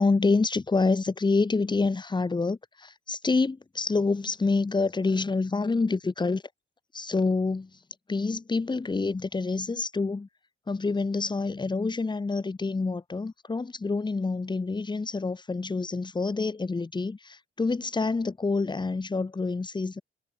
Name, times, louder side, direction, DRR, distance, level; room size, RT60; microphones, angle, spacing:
voice 1, 0.0-6.4 6.9-7.7 8.1-10.3 10.7-20.0, left 3 dB, 20° left, 2.0 m, -27 dB
cardioid pair, 120°, 21 cm